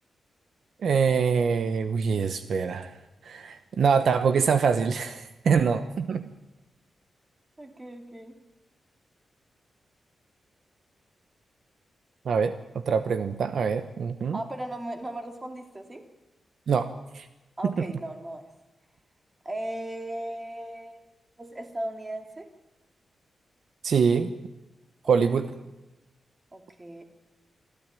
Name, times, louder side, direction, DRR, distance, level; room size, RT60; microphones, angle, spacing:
voice 1, 0.8-2.9 3.2-6.3 12.2-14.4 16.7-17.3 17.6-17.9 23.8-24.3 25.1-25.5, right 6 dB, 60° right, 10 dB, 1.0 m, -24 dB
voice 2, 7.6-8.4 14.3-16.0 17.6-18.4 19.4-21.0 21.4-22.5 25.0-25.1 26.5-27.0, right 1 dB, 15° right, 5 dB, 2.6 m, -37 dB
26.0 x 14.0 x 9.1 m, 1.0 s
wide cardioid pair, 165°, 0 cm